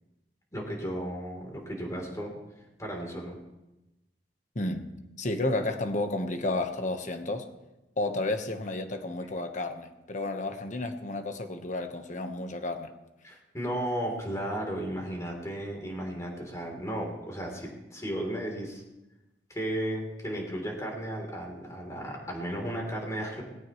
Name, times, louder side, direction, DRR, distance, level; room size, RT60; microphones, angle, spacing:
voice 1, 0.5-2.3 2.8-3.4 13.2-18.8 19.5-23.4, right 1 dB, 20° left, 0 dB, 3.5 m, -34 dB
voice 2, 4.5-4.9 5.2-7.5 8.0-12.9, left 2 dB, 45° left, 6 dB, 1.2 m, -31 dB
18.5 x 17.0 x 3.2 m, 1.0 s
head